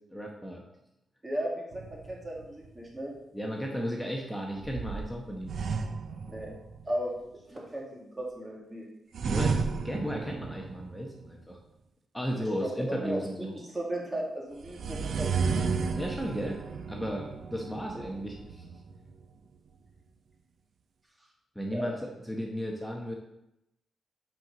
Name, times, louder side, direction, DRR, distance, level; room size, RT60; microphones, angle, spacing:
voice 1, 0.1-0.6 3.3-5.5 9.2-11.6 12.1-13.5 15.9-16.6 16.9-18.7 21.5-23.1, equal, 5° left, 0 dB, 1.0 m, -35 dB
voice 2, 1.2-3.1 6.3-6.5 6.9-7.1 7.5-8.8 12.4-13.2 13.5-15.7 18.0-18.1 21.7-21.9, right 1 dB, 20° right, -2 dB, 2.0 m, -36 dB
sound 1, 1.7-2.7 4.6-6.9 9.1-11.3 14.6-19.3, right 5 dB, 70° right, 0.6 m, -33 dB
5.8 x 4.6 x 5.1 m, 0.87 s
cardioid pair, 85°, 0 cm